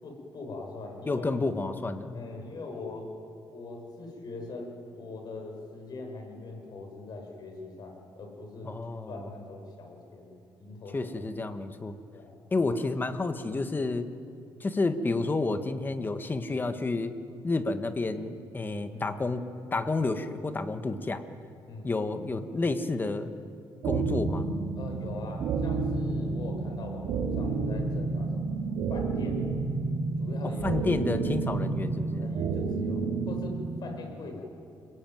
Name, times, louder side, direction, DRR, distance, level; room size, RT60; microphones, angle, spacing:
voice 1, 0.0-1.3 2.1-3.1 3.5-8.7 9.1-11.1 12.1-12.4 18.9-19.1 21.7-21.9 24.8-28.6 28.9-29.4 30.2-30.9 32.2-34.4, left 3 dB, 55° left, 2 dB, 6.8 m, -42 dB
voice 2, 1.1-2.2 8.6-9.1 10.9-11.9 12.5-14.1 14.6-17.1 17.4-21.2 21.8-23.3 23.8-24.5 30.6-32.3, left 3 dB, 25° left, 8 dB, 1.6 m, -30 dB
sound 1, 23.8-33.8, right 4 dB, 85° right, 3.4 m, -30 dB
29.0 x 21.0 x 9.5 m, 2.6 s
cardioid pair, 120°, 8 cm